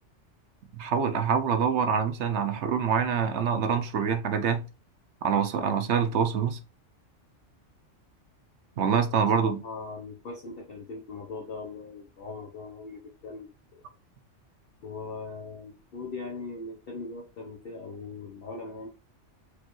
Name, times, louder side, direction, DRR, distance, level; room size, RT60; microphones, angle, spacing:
voice 1, 0.7-4.7 5.2-6.6 8.8-9.6, right 7 dB, 65° right, 0.9 m, -25 dB
voice 2, 9.0-13.8 14.8-18.9, left 3 dB, 50° left, 1.0 m, -40 dB
5.0 x 3.4 x 3.1 m
omnidirectional pair, 1.3 m